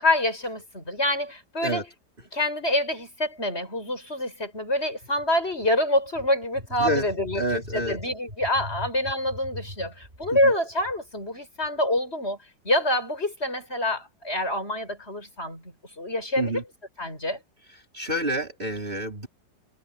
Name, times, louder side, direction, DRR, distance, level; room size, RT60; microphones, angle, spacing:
voice 1, 0.0-1.8 2.3-7.4 7.7-12.4 12.6-15.6 16.0-16.6 17.0-17.4, left 1 dB, 35° left, 7.7 m, -26 dB
voice 2, 7.3-8.0 10.4-10.5 16.4-16.6 17.9-19.3, right 1 dB, 30° right, 4.9 m, -28 dB
omnidirectional pair, 1.9 m